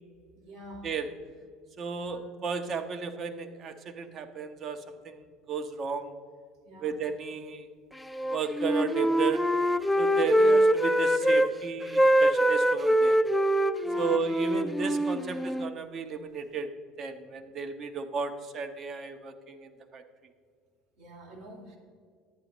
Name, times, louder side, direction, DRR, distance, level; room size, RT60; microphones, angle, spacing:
voice 1, 0.3-0.9 1.9-2.2 6.7-6.9 10.3-10.6 13.8-14.2 21.0-21.8, equal, 75° right, -3 dB, 2.4 m, -46 dB
voice 2, 1.8-6.1 6.8-7.7 8.3-9.4 10.0-13.2 14.0-16.7 17.0-20.0, right 5 dB, 45° right, 7 dB, 0.8 m, -34 dB
Wind instrument woodwind instrument, 8.1-11.5 11.8-15.7, equal, 5° left, 0.4 m, -24 dB
11.0 x 9.1 x 3.0 m, 2.1 s
hypercardioid pair, 75°, 0 cm